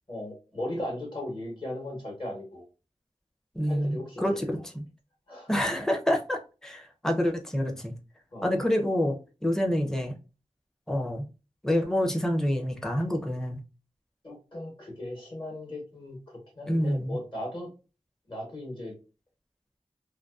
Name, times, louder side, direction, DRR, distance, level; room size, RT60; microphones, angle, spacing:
voice 1, 0.1-2.6 3.6-4.6 5.3-5.6 8.3-8.5 14.2-16.2 16.6-17.7 18.3-18.9, left 1 dB, 40° left, 1.1 m, -37 dB
voice 2, 3.5-4.5 4.7-4.8 5.5-7.9 8.4-9.2 9.4-10.1 10.9-11.2 11.6-13.6 16.7-17.2, equal, 5° left, 0.5 m, -27 dB
2.5 x 2.2 x 2.3 m
wide cardioid pair, 45°, 12 cm